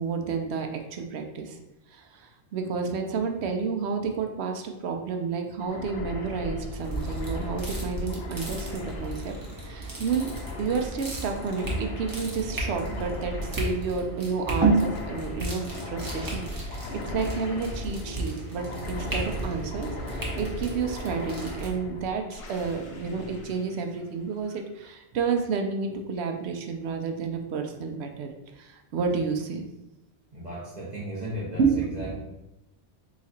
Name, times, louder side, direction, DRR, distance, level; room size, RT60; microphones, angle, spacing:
voice 1, 0.0-1.6 1.9-10.3 10.6-29.6 31.6-32.2, right 5 dB, 75° right, 4 dB, 0.8 m, -30 dB
sound 1, 5.6-24.4, left 2 dB, 85° left, 1.0 m, -38 dB
sound 2, 6.8-21.7, right 2 dB, 20° right, 0.8 m, -33 dB
voice 2, 30.3-31.6 31.9-32.2, equal, 40° right, -6 dB, 1.0 m, -35 dB
4.0 x 2.4 x 4.2 m, 0.91 s
omnidirectional pair, 1.2 m